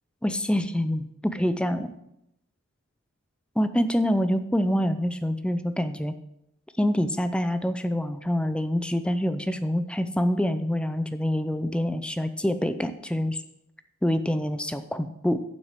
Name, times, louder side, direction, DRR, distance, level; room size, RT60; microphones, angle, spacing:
voice 1, 0.2-1.9 3.6-6.1 6.8-13.4 14.0-15.4, equal, 5° left, 10 dB, 0.5 m, -26 dB
7.4 x 6.2 x 7.4 m, 0.83 s
head